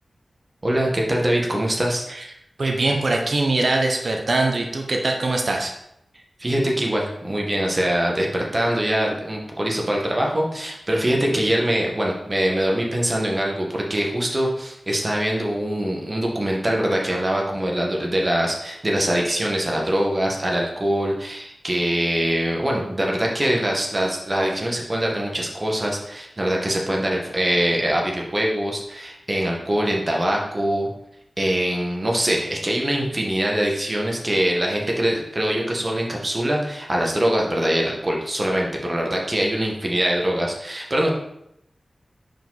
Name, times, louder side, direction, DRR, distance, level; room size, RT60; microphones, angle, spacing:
voice 1, 0.6-2.0 6.4-30.9 31.4-41.1, right 1 dB, 35° right, -1 dB, 1.5 m, -23 dB
voice 2, 2.6-5.7, right 2 dB, 65° right, 2 dB, 0.9 m, -22 dB
5.1 x 4.8 x 4.0 m, 0.78 s
cardioid pair, 45°, 0 cm